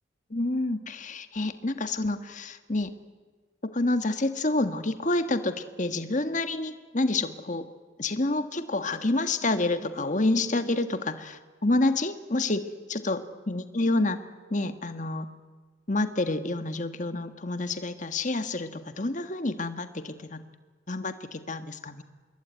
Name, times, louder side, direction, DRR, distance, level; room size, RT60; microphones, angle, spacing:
voice 1, 0.3-2.9 3.6-7.7 8.0-14.2 14.5-15.3 15.9-20.4 20.9-22.0, left 2 dB, 40° left, 9 dB, 1.5 m, -28 dB
25.5 x 22.0 x 9.6 m, 1.4 s
head